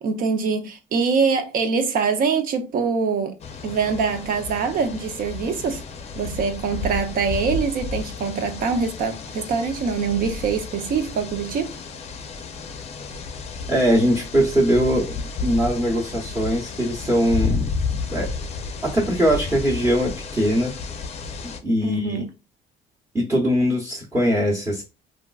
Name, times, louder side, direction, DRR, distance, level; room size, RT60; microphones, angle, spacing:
voice 1, 0.0-3.3 3.6-5.8 6.2-11.7 21.8-22.3, right 5 dB, 55° right, 0.6 m, -24 dB
sound 1, 3.4-21.6, left 4 dB, 40° left, 0.5 m, -32 dB
voice 2, 13.7-17.7 18.1-18.3 18.8-20.7 21.4-22.2 23.1-24.8, equal, 15° right, 0.9 m, -21 dB
3.5 x 2.5 x 2.3 m
cardioid pair, 110°, 17 cm